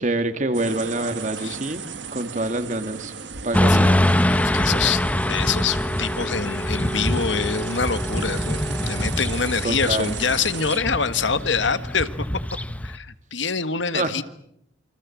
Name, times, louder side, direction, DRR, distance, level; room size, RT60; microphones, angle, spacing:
voice 1, 0.0-1.8 2.1-3.1 3.4-4.0 9.6-10.1 13.9-14.1, right 2 dB, 40° right, 9 dB, 2.3 m, -26 dB
sound 1, 0.5-10.8, right 6 dB, 75° right, 1.8 m, -36 dB
Motorcycle / Traffic noise roadway noise, 3.5-12.9, left 1 dB, 10° left, 1.2 m, -24 dB
voice 2, 3.7-5.0 5.3-12.1 12.8-14.2, left 5 dB, 80° left, 12 dB, 1.6 m, -25 dB
28.5 x 25.5 x 7.4 m, 0.74 s
head